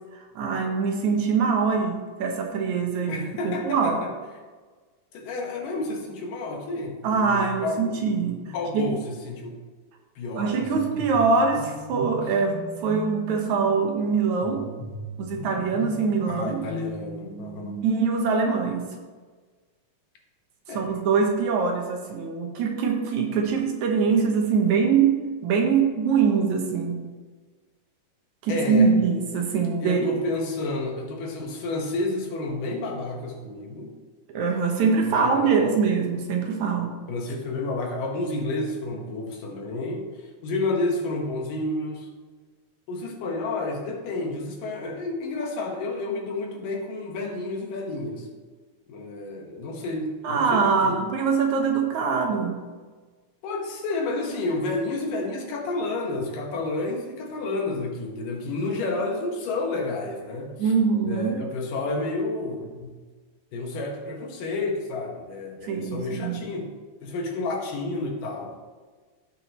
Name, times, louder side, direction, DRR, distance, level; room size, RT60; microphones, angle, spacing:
voice 1, 0.1-4.0 7.0-8.9 10.3-14.7 15.2-16.7 17.8-18.9 20.7-27.0 28.4-30.2 34.3-37.0 50.2-52.5 60.6-61.4 65.6-66.4, right 5 dB, 70° right, 2 dB, 2.3 m, -23 dB
voice 2, 3.1-4.1 5.1-8.0 8.4-9.6 10.2-11.0 16.3-17.8 20.7-20.9 28.5-28.9 29.8-33.9 35.0-35.8 37.1-40.1 40.4-42.1 42.9-48.3 48.9-51.0 53.4-60.5 61.0-62.9 63.5-66.7 67.0-68.5, left 2 dB, 90° left, 0 dB, 3.0 m, -30 dB
sound 1, 10.6-18.2, equal, 40° left, 3.8 m, -38 dB
16.0 x 5.7 x 3.0 m, 1.4 s
omnidirectional pair, 3.7 m